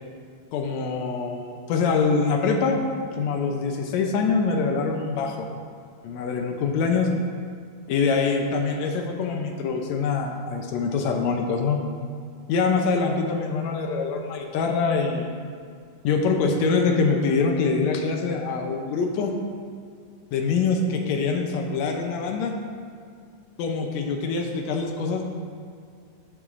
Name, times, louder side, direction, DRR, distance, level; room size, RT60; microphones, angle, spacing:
voice 1, 0.5-2.8 3.1-5.5 6.0-7.1 7.9-11.8 12.5-15.3 16.0-19.3 20.3-22.5 23.6-25.3, left 4 dB, 75° left, 3 dB, 1.7 m, -24 dB
13.5 x 6.9 x 2.5 m, 2.2 s
omnidirectional pair, 3.7 m